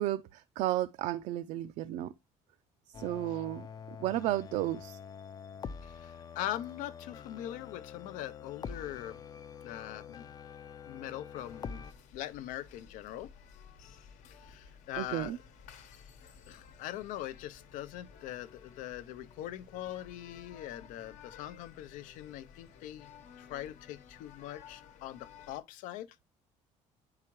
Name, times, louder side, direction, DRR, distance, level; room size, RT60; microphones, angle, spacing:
voice 1, 0.0-2.1 3.0-3.7 4.0-5.0 15.0-15.4, right 14 dB, 65° right, 0.4 m, -33 dB
sound 1, 2.9-11.9, left 6 dB, 30° left, 0.4 m, -46 dB
voice 2, 5.8-9.2 9.6-10.2 10.9-11.8 12.1-13.3 14.3-15.4 16.5-23.1 23.4-26.2, left 13 dB, 85° left, 0.6 m, -42 dB
sound 2, 11.4-25.6, left 7 dB, 70° left, 1.0 m, -55 dB
9.6 x 4.8 x 3.0 m
cardioid pair, 175°, 13 cm